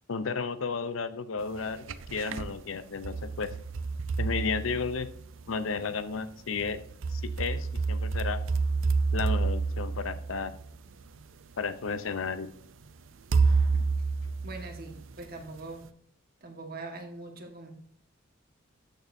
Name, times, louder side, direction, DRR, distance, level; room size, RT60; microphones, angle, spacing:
voice 1, 0.1-1.8 2.1-3.5 4.2-5.1 5.5-6.8 7.1-8.4 9.1-10.5 11.6-12.5, left 5 dB, 85° left, 13 dB, 0.7 m, -33 dB
sound 1, 1.6-2.5 3.0-5.4 6.6-11.0 11.8-11.9 13.3-15.2, right 4 dB, 75° right, 0.5 m, -29 dB
voice 2, 13.3-13.9 14.4-15.8 16.4-17.7, right 2 dB, 50° right, 3 dB, 1.6 m, -43 dB
13.0 x 6.5 x 2.7 m, 0.64 s
head